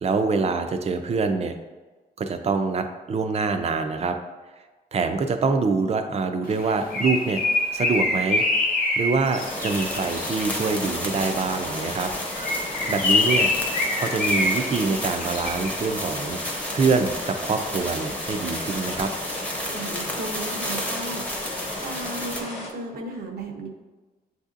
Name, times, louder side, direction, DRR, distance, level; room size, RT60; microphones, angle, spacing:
voice 1, 0.0-1.5 2.2-4.2 4.9-7.4 7.7-8.4 9.0-12.1 12.9-13.5 13.9-19.1, right 4 dB, 40° right, 7 dB, 0.4 m, -25 dB
Bird, 6.5-10.6 12.3-15.8, left 2 dB, 65° left, 0.6 m, -25 dB
sound 1, 9.3-22.7, left 1 dB, 40° left, 0.9 m, -35 dB
sound 2, 9.3-22.4, left 1 dB, 10° left, 0.7 m, -33 dB
voice 2, 19.6-21.5 21.8-23.7, right 2 dB, 85° right, 2 dB, 0.7 m, -35 dB
7.6 x 2.7 x 2.5 m, 1.3 s
wide cardioid pair, 140°, 16 cm